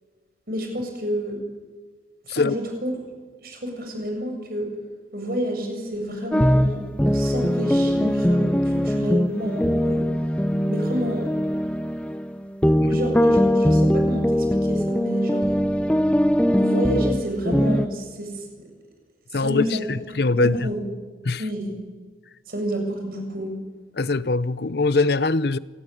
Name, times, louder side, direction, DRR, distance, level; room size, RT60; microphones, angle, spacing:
voice 1, 0.5-1.4 2.3-2.9 3.4-4.7 5.1-6.8 7.1-10.1 10.7-11.3 12.6-15.4 16.5-18.4 19.4-19.8 20.4-20.8 21.4-21.7 22.5-23.5, equal, 55° right, 7.1 m, -29 dB
sound 1, 6.3-17.9, equal, 5° left, 0.7 m, -21 dB
voice 2, 19.3-20.7 21.2-21.4 24.0-25.6, left 3 dB, 65° left, 0.7 m, -22 dB
27.5 x 18.5 x 9.9 m
head